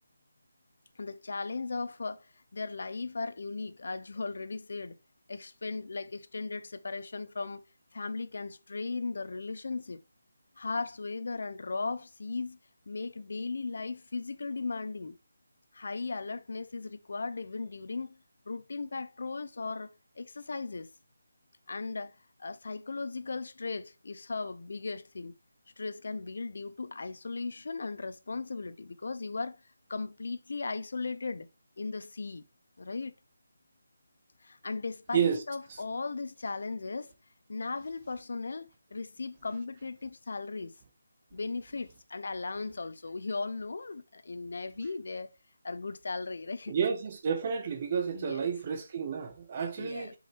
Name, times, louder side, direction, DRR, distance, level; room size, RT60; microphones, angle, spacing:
voice 1, 1.0-5.0 5.3-7.6 7.9-10.0 10.6-12.6 12.9-15.2 15.7-18.2 18.5-19.9 20.2-20.9 21.7-22.1 22.4-25.3 25.8-29.6 29.9-31.5 31.8-32.4 32.8-33.1 34.4-37.1 37.5-40.7 41.3-45.3 45.6-46.8 48.1-48.5 49.8-50.1, left 3 dB, 60° left, 0.8 m, -37 dB
voice 2, 46.7-50.1, right 7 dB, 30° right, 0.9 m, -31 dB
6.6 x 4.9 x 3.5 m
figure-of-eight pair, 170°, 0 cm